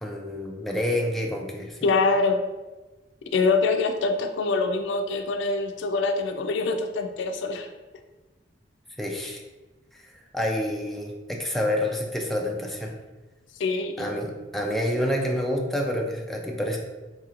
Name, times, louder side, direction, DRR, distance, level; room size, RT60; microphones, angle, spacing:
voice 1, 0.0-1.9 9.0-9.4 10.0-12.9 14.0-16.8, left 1 dB, ahead, 0 dB, 0.4 m, -28 dB
voice 2, 1.8-2.4 3.3-7.7 13.6-13.9, left 3 dB, 80° left, 6 dB, 0.4 m, -24 dB
4.0 x 2.9 x 2.4 m, 1.2 s
head